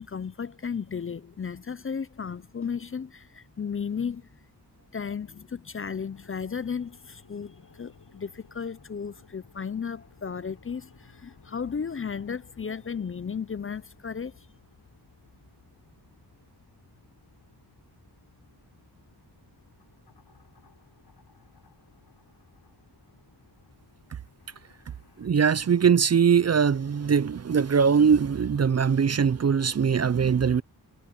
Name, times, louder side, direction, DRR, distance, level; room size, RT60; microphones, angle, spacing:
voice 1, 0.0-4.3 4.9-14.5, left 6 dB, 35° left, 0.5 m, -34 dB
sound 1, 5.8-25.3, left 5 dB, 70° left, 7.3 m, -59 dB
voice 2, 25.2-30.6, right 6 dB, 40° right, 0.5 m, -21 dB
wide cardioid pair, 105°, 40 cm